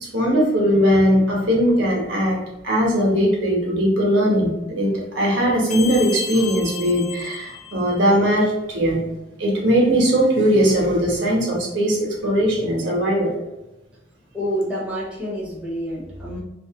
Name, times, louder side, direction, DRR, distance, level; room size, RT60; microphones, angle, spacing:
voice 1, 0.0-9.0 9.4-13.3, equal, 75° right, -2 dB, 1.1 m, -19 dB
sound 1, 5.7-8.3, left 8 dB, 35° left, 0.4 m, -34 dB
voice 2, 14.3-16.4, equal, 5° right, -5 dB, 0.7 m, -28 dB
2.9 x 2.6 x 2.8 m, 0.97 s
head